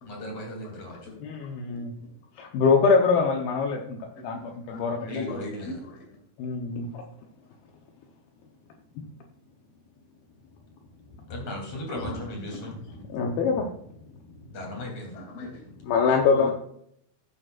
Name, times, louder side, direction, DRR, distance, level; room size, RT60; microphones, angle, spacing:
voice 1, 0.1-1.0 4.9-5.7 11.3-12.8 14.5-15.1, left 1 dB, 45° left, 0 dB, 4.1 m, -36 dB
voice 2, 0.6-1.5 2.0-2.1 4.3-6.2 11.9-13.0 15.1-15.7 16.3-16.5, left 2 dB, 30° left, 1 dB, 2.5 m, -42 dB
voice 3, 1.2-1.9 2.4-5.1 6.4-7.0 13.1-13.7 15.9-16.5, left 5 dB, 75° left, 1 dB, 2.7 m, -24 dB
14.5 x 9.3 x 2.5 m, 0.69 s
omnidirectional pair, 4.7 m